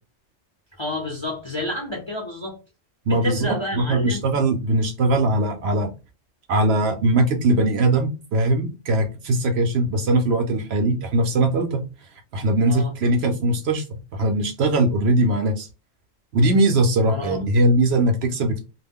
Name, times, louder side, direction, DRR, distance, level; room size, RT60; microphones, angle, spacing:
voice 1, 0.8-2.6 3.1-4.2 12.6-12.9 17.0-17.4, left 1 dB, 30° left, 0.5 m, -29 dB
voice 2, 3.1-5.9 6.5-11.8 12.3-13.8 14.1-15.7 16.3-18.6, right 2 dB, 65° right, 0.7 m, -20 dB
2.3 x 2.1 x 3.4 m
omnidirectional pair, 1.3 m